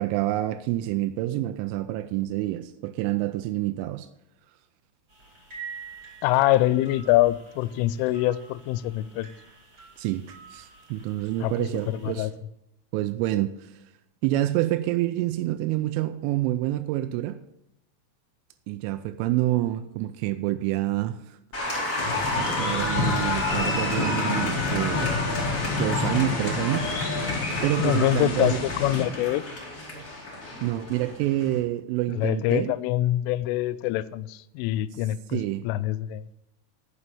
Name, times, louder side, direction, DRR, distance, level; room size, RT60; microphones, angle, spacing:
voice 1, 0.0-4.1 10.0-12.3 12.9-13.7 14.2-17.4 18.7-21.4 22.4-25.5 25.8-26.9 27.6-28.6 30.6-32.7 35.3-35.6, right 15 dB, 90° right, 3.1 m, -27 dB
sound 1, 5.1-12.3, right 6 dB, 20° right, 4.5 m, -47 dB
voice 2, 6.2-9.3 11.4-12.3 27.8-29.4 32.1-36.2, left 14 dB, 90° left, 3.1 m, -25 dB
Applause, 21.5-31.6, left 2 dB, 25° left, 1.9 m, -30 dB
sound 2, 22.0-29.0, left 4 dB, 65° left, 1.7 m, -30 dB
9.7 x 7.0 x 6.9 m
omnidirectional pair, 5.5 m